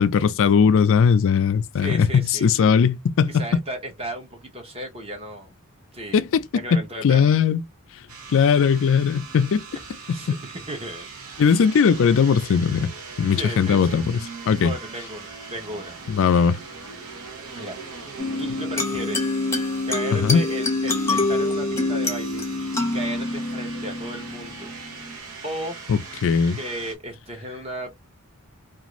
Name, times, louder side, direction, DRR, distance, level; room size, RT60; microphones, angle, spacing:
voice 1, 0.0-3.4 6.1-7.6 8.3-9.7 10.1-10.4 11.4-12.9 13.2-14.2 14.5-14.7 16.1-16.6 20.1-20.4 25.9-26.6, left 6 dB, 60° left, 0.4 m, -19 dB
voice 2, 1.8-2.7 3.3-5.5 5.9-6.3 6.5-7.2 10.1-11.1 13.4-14.0 14.6-16.0 17.5-17.8 18.4-19.3 19.8-22.4 22.8-24.7 25.4-25.8 26.5-28.0, right 1 dB, 25° right, 0.8 m, -34 dB
sound 1, 8.1-27.0, right 4 dB, 70° right, 0.8 m, -40 dB
sound 2, 18.2-25.2, left 2 dB, 15° left, 0.7 m, -26 dB
2.5 x 2.5 x 3.0 m
head